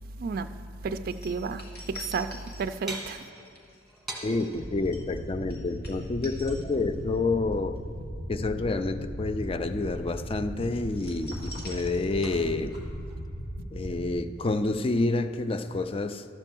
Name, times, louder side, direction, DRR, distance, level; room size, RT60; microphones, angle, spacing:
voice 1, 0.2-0.5 0.8-3.2, right 4 dB, 55° right, 0.3 m, -32 dB
sound 1, 1.1-7.2 7.5-7.8 10.9-12.5 12.7-12.8, left 2 dB, 60° left, 1.8 m, -46 dB
sound 2, 2.9-4.7 6.4-7.5 9.5-10.7 11.1-13.3, right 2 dB, ahead, 1.5 m, -44 dB
voice 2, 4.2-7.7 8.3-12.8 13.7-16.3, left 3 dB, 30° left, 0.4 m, -28 dB
sound 3, 4.6-14.1, equal, 85° left, 1.2 m, -37 dB
12.0 x 4.4 x 7.5 m
head